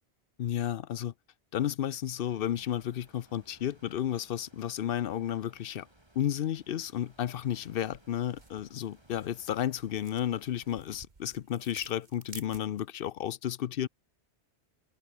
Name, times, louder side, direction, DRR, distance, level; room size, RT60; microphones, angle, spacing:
voice 1, 0.4-1.1 1.5-5.9 6.1-13.9, left 10 dB, 60° left, 0.7 m, -32 dB
sound 1, 2.1-10.8, right 1 dB, 25° right, 3.9 m, -62 dB
sound 2, 6.9-13.0, right 3 dB, 45° right, 1.9 m, -54 dB
omnidirectional pair, 1.1 m